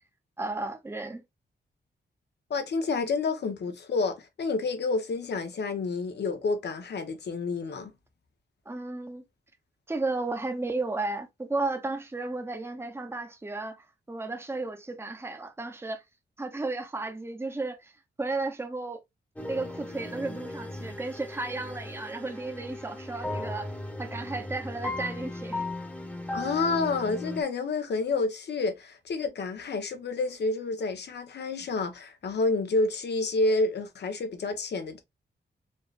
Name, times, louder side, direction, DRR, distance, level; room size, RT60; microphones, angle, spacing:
voice 1, 0.4-1.2 8.7-9.2 9.9-16.0 16.4-17.9 18.2-19.0 19.5-23.7 24.0-25.7, right 3 dB, 15° right, 0.9 m, -33 dB
voice 2, 2.5-7.9 26.3-35.0, left 3 dB, 70° left, 1.1 m, -29 dB
sound 1, 19.4-27.4, left 1 dB, 10° left, 1.1 m, -37 dB
4.6 x 3.3 x 2.4 m
wide cardioid pair, 115°, 18 cm